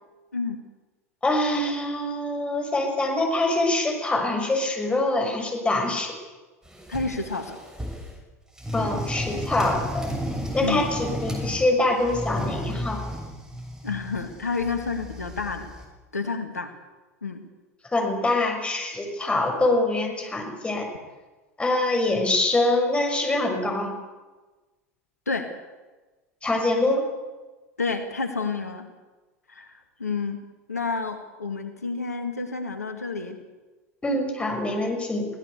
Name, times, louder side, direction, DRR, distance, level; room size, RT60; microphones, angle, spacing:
voice 1, 1.2-6.1 8.7-10.1 10.5-13.0 17.9-20.9 21.6-23.9 26.4-27.0 34.0-35.3, left 2 dB, 15° left, 3 dB, 6.2 m, -24 dB
sound 1, 6.7-8.2 8.6-11.7 12.0-15.9, equal, 5° right, 6.5 m, -33 dB
voice 2, 6.9-7.6 10.6-10.9 13.8-15.7 16.1-16.7 17.2-17.4 25.3-25.5 27.8-28.9 29.5-30.4 30.7-33.4, left 4 dB, 85° left, 7 dB, 2.0 m, -30 dB
23.5 x 17.0 x 8.2 m, 1.2 s
figure-of-eight pair, 85°, 8 cm